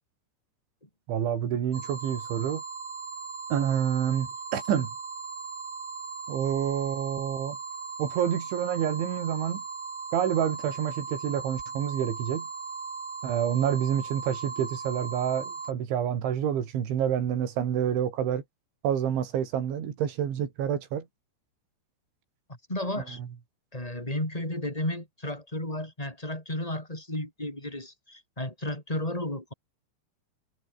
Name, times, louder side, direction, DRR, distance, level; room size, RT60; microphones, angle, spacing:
voice 1, 1.1-2.6 3.5-4.9 6.3-7.6 8.0-9.6 10.1-12.5 13.2-18.4 18.8-21.1, right 9 dB, 80° right, 5.6 m, -28 dB
sound 1, 1.7-15.7, right 5 dB, 50° right, 7.8 m, -38 dB
voice 2, 22.7-23.2 23.7-29.5, left 1 dB, 5° left, 7.5 m, -33 dB
omnidirectional pair, 5.3 m